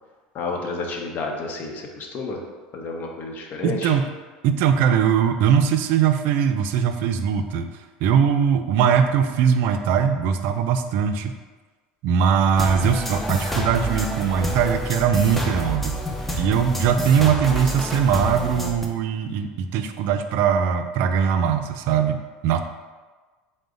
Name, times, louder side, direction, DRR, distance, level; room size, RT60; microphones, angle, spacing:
voice 1, 0.3-2.4 2.7-3.9, left 3 dB, 50° left, 1 dB, 0.8 m, -30 dB
voice 2, 3.6-4.0 4.4-7.7 8.0-11.4 12.0-16.0 16.4-22.7, right 7 dB, 65° right, 8 dB, 0.3 m, -21 dB
sound 1, 12.6-18.9, equal, 5° left, 0.5 m, -28 dB
4.6 x 2.1 x 3.8 m, 1.3 s
supercardioid pair, 95°, 4 cm